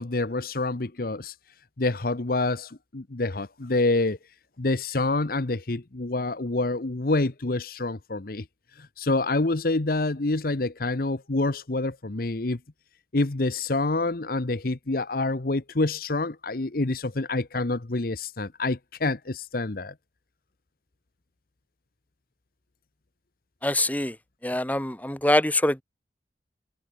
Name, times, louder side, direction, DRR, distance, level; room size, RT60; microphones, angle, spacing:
voice 1, 0.0-1.3 1.8-4.2 4.6-8.4 8.8-12.6 13.1-19.9, left 2 dB, 55° left, 1.0 m, -27 dB
voice 2, 23.6-24.2 24.4-25.8, left 1 dB, 10° left, 2.2 m, -24 dB
head